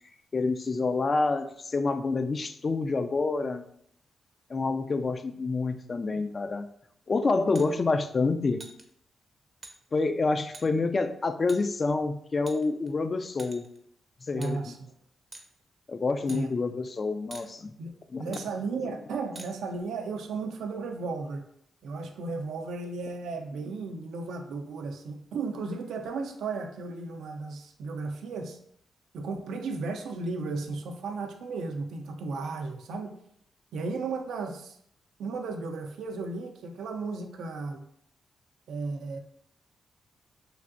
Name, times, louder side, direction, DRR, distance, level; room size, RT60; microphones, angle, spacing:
voice 1, 0.3-3.6 4.5-6.7 7.1-8.6 9.9-13.6 14.3-14.7 15.9-17.7 18.1-18.3, left 3 dB, 45° left, 8 dB, 0.3 m, -28 dB
sound 1, 7.5-7.7 8.6-8.8 9.6-9.7 10.5-10.7 11.5-11.6 12.5-12.9 13.4-13.8 14.4-14.5 15.3-15.5 16.3-16.4 17.3-17.5 18.3-18.5 19.4-19.5, right 2 dB, 35° right, 0.5 m, -45 dB
voice 2, 14.3-14.9 16.3-16.5 17.8-17.9 18.2-21.5 21.8-28.6 29.1-33.1 33.7-34.8 35.2-37.8 38.7-39.2, right 4 dB, 85° right, 4 dB, 0.4 m, -34 dB
3.2 x 2.6 x 2.5 m, 0.67 s
cardioid pair, 60°, 0 cm